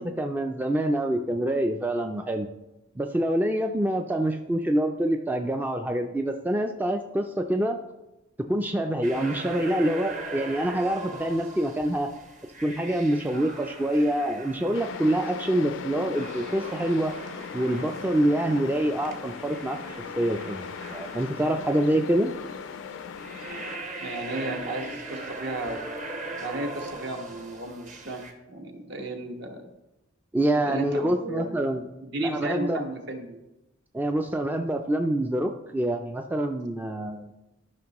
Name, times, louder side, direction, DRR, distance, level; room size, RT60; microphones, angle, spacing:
voice 1, 0.0-2.5 3.0-7.8 8.5-12.1 12.6-17.2 17.5-22.4 30.3-31.8 32.2-32.8 33.9-37.3, right 1 dB, 10° right, 5 dB, 0.3 m, -26 dB
sound 1, 9.0-28.3, right 2 dB, 40° right, 1.1 m, -40 dB
sound 2, 14.7-23.8, left 5 dB, 70° left, 0.4 m, -38 dB
voice 2, 24.0-25.9 26.4-28.2 28.5-29.7 30.7-31.6 32.0-33.4, right 1 dB, 60° right, 3 dB, 1.2 m, -34 dB
13.0 x 5.8 x 3.0 m, 0.98 s
head